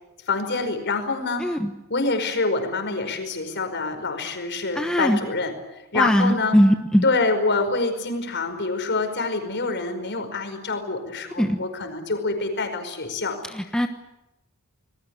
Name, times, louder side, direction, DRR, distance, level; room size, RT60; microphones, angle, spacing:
voice 1, 0.3-1.6 1.9-5.5 5.9-6.6 7.0-13.4, left 3 dB, 55° left, 6 dB, 5.2 m, -26 dB
voice 2, 1.4-1.7 4.7-5.2 5.9-7.0 11.4-11.6 13.5-13.9, equal, 5° left, 5 dB, 1.2 m, -20 dB
27.5 x 20.5 x 8.3 m, 0.97 s
head